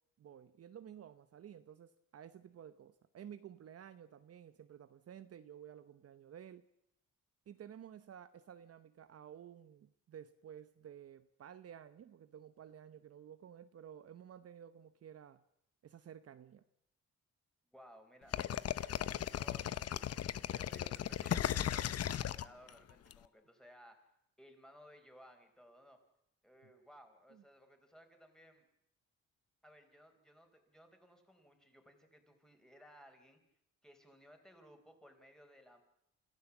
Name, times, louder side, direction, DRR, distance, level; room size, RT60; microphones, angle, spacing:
voice 1, 0.2-6.6 7.5-15.4 15.8-16.6 27.3-27.4, right 9 dB, 55° right, 11 dB, 0.9 m, -53 dB
voice 2, 17.7-24.1 24.4-26.0 26.4-28.7 29.6-33.4 33.8-35.8, equal, ahead, 5 dB, 4.4 m, -60 dB
sound 1, 18.3-23.1, left 10 dB, 55° left, 0.8 m, -36 dB
27.0 x 14.5 x 7.3 m, 0.78 s
cardioid pair, 90°, 30 cm